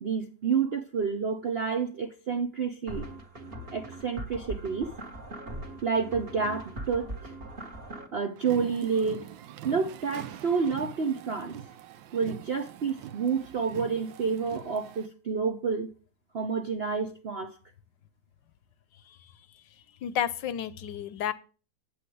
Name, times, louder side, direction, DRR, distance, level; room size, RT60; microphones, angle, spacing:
voice 1, 0.0-3.1 3.7-4.9 5.8-7.3 8.1-9.3 9.6-11.6 12.1-15.9 16.3-17.6, right 5 dB, 60° right, 0.6 m, -29 dB
sound 1, 2.9-8.1, right 1 dB, 35° right, 1.5 m, -40 dB
sound 2, 8.4-15.1, right 10 dB, 85° right, 1.4 m, -44 dB
voice 2, 20.0-21.3, left 9 dB, 75° left, 1.4 m, -31 dB
8.7 x 8.5 x 3.3 m
omnidirectional pair, 2.0 m